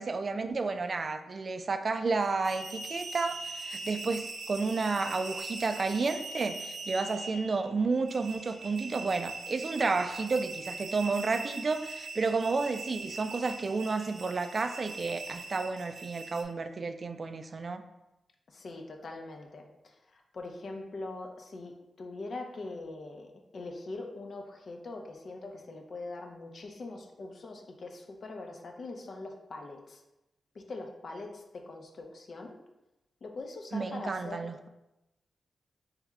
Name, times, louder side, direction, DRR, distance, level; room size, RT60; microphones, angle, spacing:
voice 1, 0.0-17.8 33.7-34.7, right 4 dB, 50° right, 8 dB, 0.3 m, -31 dB
sound 1, 2.2-16.4, right 3 dB, 75° right, 0.7 m, -41 dB
voice 2, 18.5-30.0 30.5-32.6 33.2-34.5, left 2 dB, 60° left, 3 dB, 0.6 m, -42 dB
3.5 x 3.1 x 3.5 m, 0.95 s
cardioid pair, 70°, 0 cm